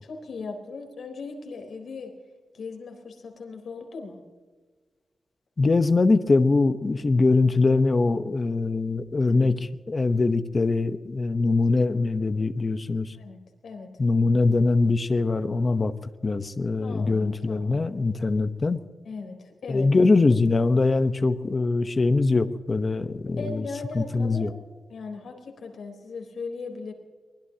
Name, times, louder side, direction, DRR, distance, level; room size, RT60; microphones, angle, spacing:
voice 1, 0.0-2.1 2.5-4.2 9.2-9.6 13.2-13.9 16.8-17.8 19.0-19.9 23.3-24.5 24.9-26.9, left 4 dB, 75° left, 3 dB, 4.0 m, -38 dB
voice 2, 5.6-13.2 14.0-18.8 19.7-23.6 23.9-24.5, left 3 dB, 35° left, 9 dB, 0.9 m, -22 dB
24.0 x 21.0 x 2.9 m, 1.4 s
wide cardioid pair, 135°, 0 cm